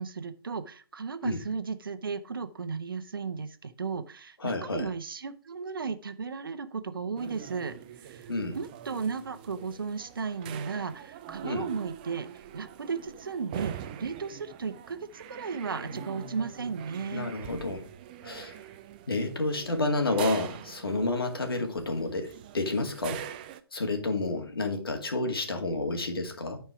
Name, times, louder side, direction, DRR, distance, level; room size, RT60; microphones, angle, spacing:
voice 1, 0.0-12.3 12.5-17.3, right 5 dB, 60° right, 0.9 m, -35 dB
voice 2, 4.4-4.9 8.3-8.6 11.4-11.7 15.8-16.4 17.1-17.9 18.2-18.6 19.1-23.2 23.7-26.6, left 2 dB, 65° left, 2.2 m, -30 dB
sound 1, 7.2-23.6, right 10 dB, 20° right, 0.4 m, -44 dB
9.8 x 4.5 x 4.9 m
figure-of-eight pair, 140°, 13 cm